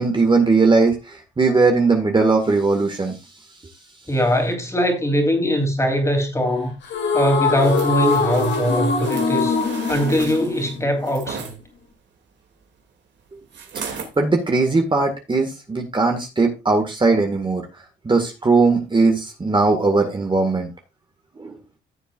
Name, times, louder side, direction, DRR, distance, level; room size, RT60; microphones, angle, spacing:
voice 1, 0.0-3.2 13.9-17.7 18.0-20.7 21.4-21.6, right 3 dB, 25° right, 2.0 m, -19 dB
voice 2, 4.1-6.7 7.1-9.6 9.9-11.5, equal, 15° left, 3.3 m, -21 dB
sound 1, 6.8-11.3, left 4 dB, 65° left, 3.1 m, -23 dB
sound 2, 7.5-11.5 13.5-14.2 14.7-14.8, right 6 dB, 65° right, 2.7 m, -36 dB
15.5 x 7.0 x 2.5 m
cardioid pair, 90°, 20 cm